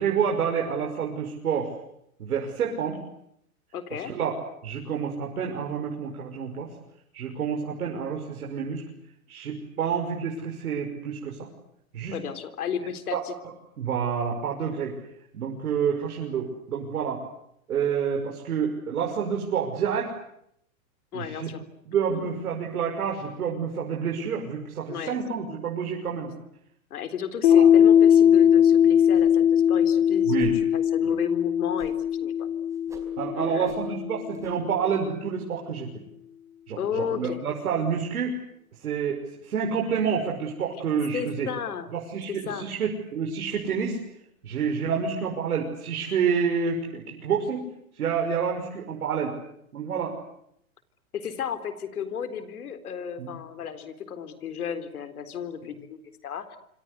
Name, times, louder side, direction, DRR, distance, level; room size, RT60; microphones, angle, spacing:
voice 1, 0.0-1.8 2.2-3.0 3.9-4.3 4.6-6.7 7.1-8.8 9.3-11.5 11.9-12.2 13.1-13.2 13.8-15.0 15.3-17.2 17.7-20.1 21.1-21.5 21.9-26.3 27.5-27.7 30.3-30.5 33.2-36.0 36.7-38.4 38.8-41.5 41.9-44.0 44.4-47.7 47.9-49.3 49.7-50.1 53.2-53.3, right 6 dB, 85° right, 0 dB, 6.1 m, -28 dB
voice 2, 3.7-4.1 12.1-13.3 21.1-21.6 22.1-22.4 24.1-24.3 24.9-25.2 25.5-25.6 26.9-32.5 33.3-33.7 36.8-37.4 41.1-41.9 42.3-42.7 51.1-56.6, left 8 dB, 85° left, 11 dB, 4.0 m, -33 dB
Piano, 27.4-34.7, left 9 dB, 60° left, 3.5 m, -20 dB
sound 1, 29.1-29.5 29.8-29.9 30.3-30.6 31.8-32.2 32.4-33.1 33.6-33.9 34.3-34.6, right 3 dB, 5° right, 4.5 m, -48 dB
26.5 x 26.0 x 8.3 m, 0.74 s
hypercardioid pair, 160°, 43 cm